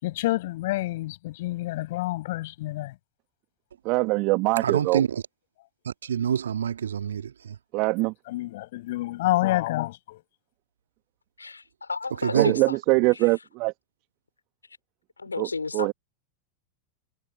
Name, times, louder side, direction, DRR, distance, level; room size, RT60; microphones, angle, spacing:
voice 1, 0.0-2.9 8.3-10.2, left 17 dB, 55° left, 7.0 m, -28 dB
voice 2, 3.8-5.0 7.7-8.1 12.3-13.7 15.4-15.5 15.7-15.9, right 25 dB, 40° right, 1.5 m, -23 dB
voice 3, 4.6-5.1 5.9-7.3 12.2-12.6, right 8 dB, 65° right, 1.9 m, -26 dB
voice 4, 11.4-12.8 15.2-15.9, left 4 dB, 80° left, 4.0 m, -32 dB
figure-of-eight pair, 90°, 0 cm